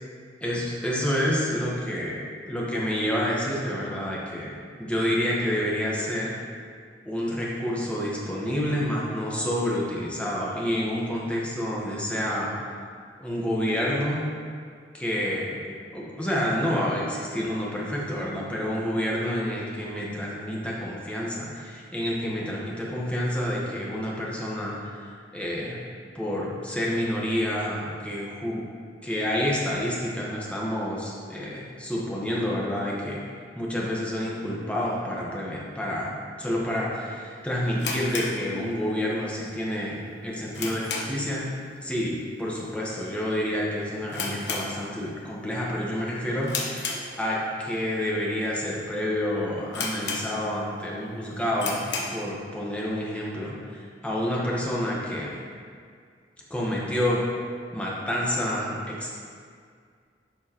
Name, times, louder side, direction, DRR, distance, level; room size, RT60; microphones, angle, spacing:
voice 1, 0.4-6.3 7.0-12.5 13.2-14.2 14.9-15.6 15.9-25.8 26.1-28.6 29.0-33.2 33.5-36.1 36.4-41.5 41.8-46.9 47.2-51.8 52.1-55.4 56.5-57.2 57.7-59.2, equal, 5° left, -5 dB, 1.2 m, -28 dB
sound 1, 37.8-39.1 39.4-39.5 40.0-41.4 41.7-42.0 42.2-42.3 43.0-43.3 43.6-43.7 44.1-45.3 45.6-45.9 46.4-47.6 48.1-48.2 48.8-48.9 49.2-49.3 49.7-50.7 51.1-51.2 51.5-52.3, left 4 dB, 70° left, 1.0 m, -33 dB
11.0 x 4.8 x 3.0 m, 2.1 s
head